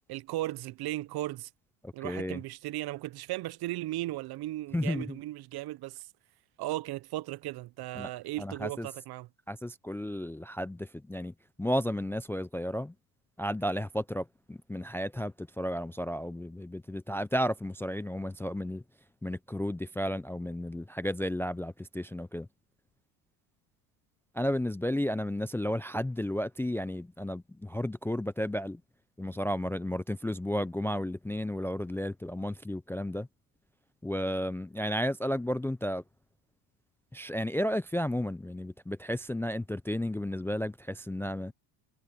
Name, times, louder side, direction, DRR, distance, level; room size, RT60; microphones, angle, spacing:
voice 1, 0.1-1.5 1.9-6.1 6.6-9.3, right 16 dB, 50° right, 0.7 m, -36 dB
voice 2, 1.8-2.4 4.7-5.2 7.9-8.1 8.4-8.9 9.5-12.9 13.4-18.8 19.2-22.5 24.3-28.8 29.2-33.3 34.0-36.0 37.1-41.5, equal, 5° left, 0.5 m, -33 dB
supercardioid pair, 95°, 49 cm